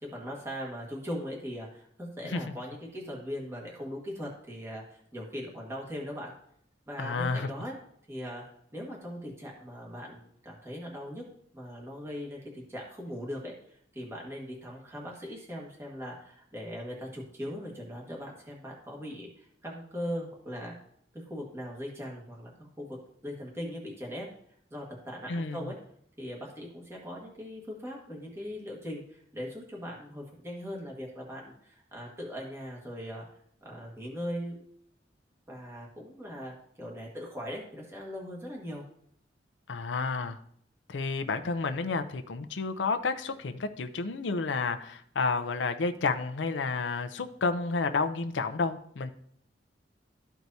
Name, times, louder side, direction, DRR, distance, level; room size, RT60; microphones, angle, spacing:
voice 1, 0.0-6.3 6.9-7.7 8.1-8.4 8.7-11.2 11.5-20.7 21.1-23.0 23.2-24.3 24.7-25.8 26.2-33.2 33.6-34.6 35.5-38.8, equal, 15° right, -2 dB, 1.5 m, -40 dB
voice 2, 7.0-7.5 25.3-25.7 39.7-40.4 40.9-49.1, left 4 dB, 90° left, 8 dB, 0.6 m, -30 dB
13.0 x 4.6 x 2.7 m, 0.67 s
head